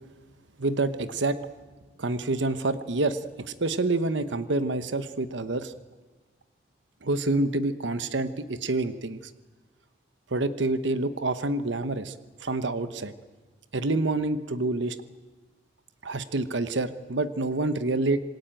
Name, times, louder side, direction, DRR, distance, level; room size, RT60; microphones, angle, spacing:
voice 1, 0.6-1.4 2.0-5.7 7.0-9.2 10.3-12.1 12.4-13.1 13.7-15.0 16.0-18.2, right 2 dB, 80° right, 12 dB, 1.0 m, -27 dB
27.0 x 20.0 x 9.0 m, 1.3 s
head